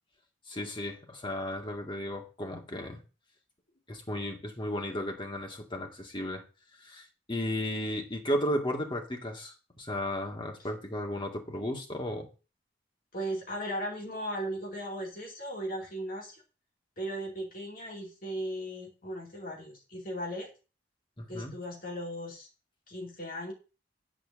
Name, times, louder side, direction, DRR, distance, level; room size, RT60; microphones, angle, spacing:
voice 1, 0.5-3.0 3.9-6.4 6.8-12.3 21.2-21.5, left 1 dB, 25° left, 1.9 m, -34 dB
voice 2, 13.1-16.4 17.0-20.5 21.3-22.5 22.9-23.5, equal, 50° left, 2.7 m, -37 dB
9.0 x 4.5 x 7.4 m
head